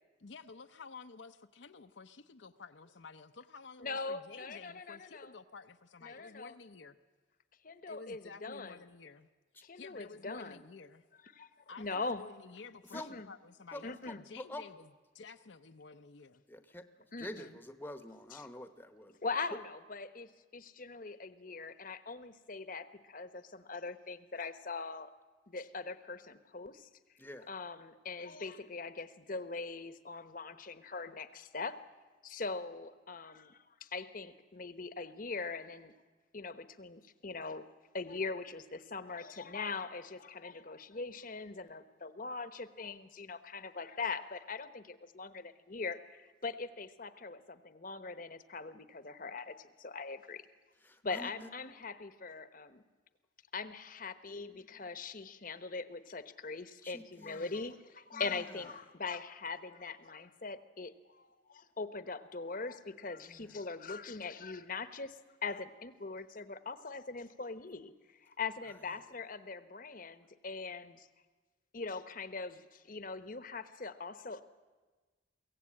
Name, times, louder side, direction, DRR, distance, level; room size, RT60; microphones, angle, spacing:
voice 1, 0.2-7.0 7.9-9.3 9.7-11.0 11.7-16.4, left 4 dB, 70° left, 8 dB, 0.7 m, -52 dB
voice 2, 3.8-5.3 6.0-6.5 7.6-8.7 9.6-10.6 11.4-11.5 11.8-12.2 12.9-13.3 13.8-14.2 17.1-17.6 18.3-18.5 19.2-25.1 25.5-26.9 27.5-31.8 32.2-35.9 36.3-37.7 37.9-50.4 51.0-52.8 53.5-67.9 68.2-71.1 71.7-74.4, left 4 dB, 45° left, 12 dB, 1.0 m, -41 dB
voice 3, 14.3-14.6 16.5-16.8 17.2-19.1 27.2-27.5 50.8-51.5 56.8-57.5 58.1-58.2 63.3-63.5, left 1 dB, 10° left, 9 dB, 0.9 m, -46 dB
23.0 x 16.5 x 8.7 m, 1.3 s
head